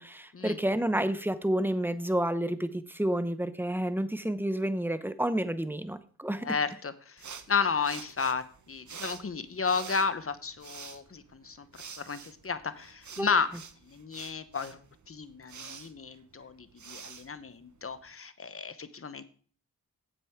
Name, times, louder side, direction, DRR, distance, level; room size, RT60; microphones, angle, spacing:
voice 1, 0.0-6.5 13.2-13.3, right 1 dB, 5° right, 12 dB, 0.8 m, -30 dB
voice 2, 6.4-11.7 12.0-13.5 13.9-19.2, left 5 dB, 35° left, 12 dB, 0.9 m, -33 dB
sound 1, 7.2-18.1, right 6 dB, 50° right, 1.0 m, -48 dB
9.3 x 7.6 x 3.6 m, 0.44 s
cardioid pair, 55°, 37 cm